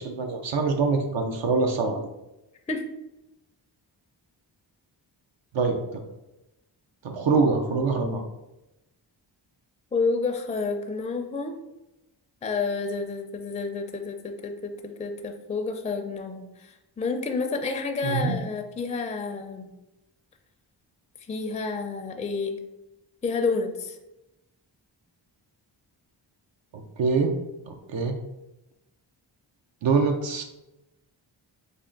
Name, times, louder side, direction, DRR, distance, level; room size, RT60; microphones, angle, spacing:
voice 1, 0.0-2.1 5.5-6.0 7.0-8.2 18.0-18.4 26.7-27.3 27.7-28.2 29.8-30.4, right 4 dB, 70° right, 3 dB, 0.6 m, -24 dB
voice 2, 9.9-11.5 12.4-19.7 21.3-22.6 23.2-24.0, left 4 dB, 15° left, 4 dB, 0.4 m, -29 dB
3.5 x 2.4 x 3.7 m, 0.95 s
cardioid pair, 65°, 46 cm